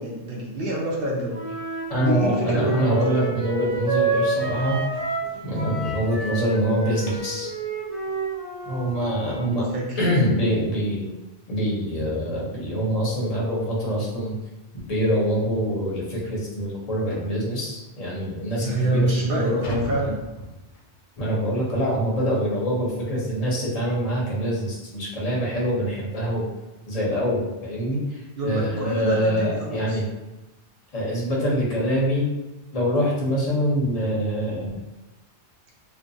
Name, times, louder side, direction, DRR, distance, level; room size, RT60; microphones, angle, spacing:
voice 1, 0.0-1.4 2.0-3.2 9.4-10.0 18.6-20.2 28.4-30.0, right 1 dB, 60° right, -3 dB, 0.8 m, -26 dB
Wind instrument woodwind instrument, 1.3-5.3 5.5-9.5, right 4 dB, 25° right, 0.4 m, -29 dB
voice 2, 1.9-4.8 5.4-7.5 8.6-9.6 10.0-11.1 11.5-14.4 14.9-19.1 19.4-19.6 21.2-26.5 26.9-30.0 30.9-32.3 32.7-34.8, equal, 40° left, -5 dB, 0.7 m, -25 dB
sound 1, 4.4-7.5 10.3-10.4 10.9-11.1 11.4-11.5 12.0-12.1 13.2-13.3 13.7-13.9 14.5-14.6 15.0-15.1 15.6-15.7 17.1-17.4 18.1-18.2 18.7-21.0, equal, 85° left, 0.9 m, -40 dB
2.5 x 2.3 x 2.6 m, 1.0 s
omnidirectional pair, 1.1 m